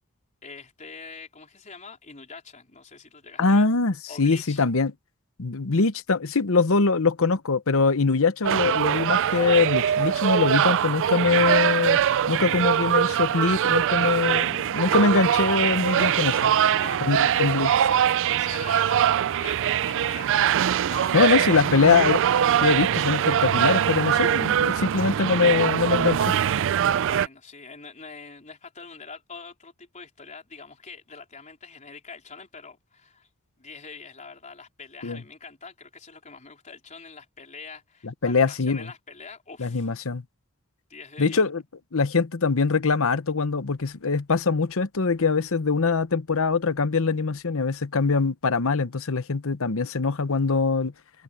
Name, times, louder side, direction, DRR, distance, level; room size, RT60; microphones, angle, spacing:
voice 1, 0.4-3.7 4.1-4.6 16.7-21.2 21.4-22.0 27.0-33.3 33.6-39.9 40.9-41.4, left 5 dB, 35° left, 4.2 m, -44 dB
voice 2, 3.4-4.9 5.4-16.5 17.0-17.7 21.1-22.2 22.6-26.4 35.0-35.2 38.0-38.9 39.6-40.2 41.2-41.6 41.9-50.9, left 4 dB, 65° left, 0.9 m, -23 dB
sound 1, 8.4-27.3, right 9 dB, 60° right, 0.4 m, -22 dB
head